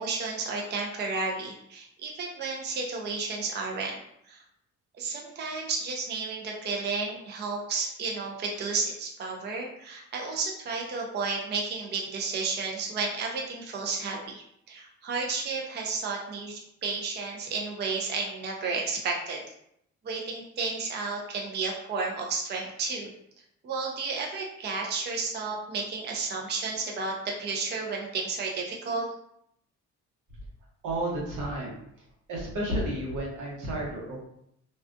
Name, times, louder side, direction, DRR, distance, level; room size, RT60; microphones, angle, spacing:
voice 1, 0.0-4.0 4.3-4.4 5.0-19.4 20.0-23.1 23.6-29.1, right 4 dB, 35° right, 0 dB, 0.4 m, -32 dB
voice 2, 30.8-31.8 32.3-34.2, right 1 dB, 80° right, -4 dB, 1.0 m, -31 dB
2.3 x 2.3 x 2.5 m, 0.74 s
cardioid pair, 90°, 30 cm